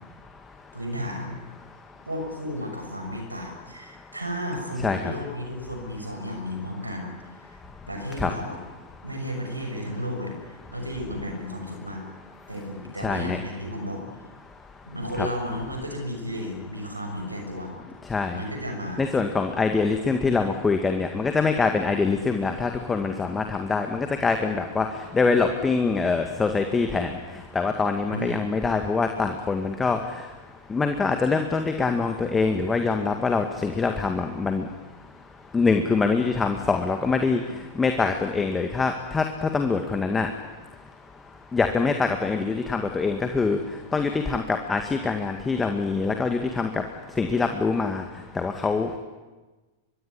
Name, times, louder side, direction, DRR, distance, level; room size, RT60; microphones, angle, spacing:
voice 1, 0.7-1.4 2.0-7.1 7.4-7.6 7.9-8.6 9.0-12.0 12.5-14.0 14.8-17.7 18.3-19.0 28.1-28.4, equal, 90° right, 3 dB, 6.4 m, -33 dB
voice 2, 4.8-5.1 8.2-8.3 13.0-13.4 15.2-15.3 18.0-18.4 19.0-30.4 30.7-34.7 35.5-40.4 41.5-49.0, left 4 dB, 15° left, 6 dB, 2.0 m, -24 dB
24.0 x 22.5 x 9.9 m, 1.2 s
figure-of-eight pair, 95°, 0 cm